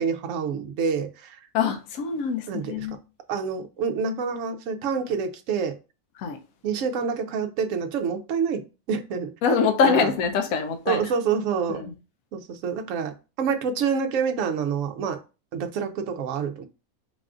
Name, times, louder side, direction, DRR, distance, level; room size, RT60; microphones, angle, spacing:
voice 1, 0.0-1.5 2.5-2.9 3.3-5.8 6.6-8.6 8.9-9.3 9.8-10.1 10.9-11.8 12.3-15.2 15.5-16.6, right 6 dB, 70° right, 0.9 m, -27 dB
voice 2, 1.5-3.0 6.2-6.4 9.4-11.0 11.8-11.9, left 6 dB, 75° left, 1.0 m, -24 dB
4.0 x 2.4 x 3.6 m
omnidirectional pair, 1.5 m